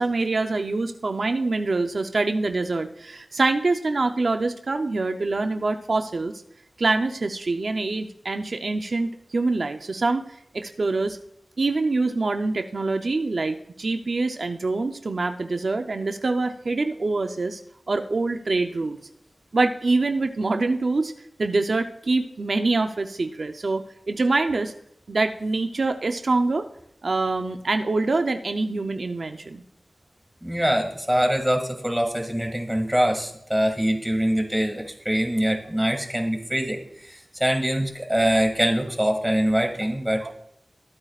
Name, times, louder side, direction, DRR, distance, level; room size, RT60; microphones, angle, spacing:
voice 1, 0.0-6.3 6.8-10.3 10.5-11.2 11.6-17.6 17.9-19.0 19.5-21.1 21.4-24.7 25.1-26.7 27.0-29.6 40.2-40.3, right 3 dB, 75° right, 6 dB, 0.6 m, -25 dB
voice 2, 30.4-40.3, equal, 10° right, 3 dB, 2.2 m, -24 dB
22.0 x 8.6 x 2.4 m, 0.77 s
wide cardioid pair, 60°, 0 cm